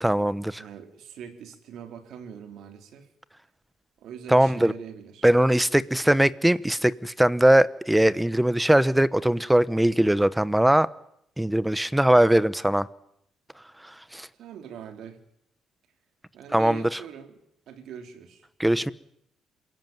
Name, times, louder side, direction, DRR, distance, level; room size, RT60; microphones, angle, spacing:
voice 1, 0.0-0.6 4.3-4.7 5.2-10.9 11.4-12.9 14.1-14.3 16.5-16.9 18.6-18.9, right 1 dB, 5° right, 18 dB, 0.9 m, -20 dB
voice 2, 0.6-3.1 4.0-5.3 14.3-15.2 16.3-17.4 17.7-18.5, right 8 dB, 70° right, 7 dB, 3.8 m, -42 dB
27.5 x 16.5 x 9.3 m, 0.73 s
cardioid pair, 115°, 0 cm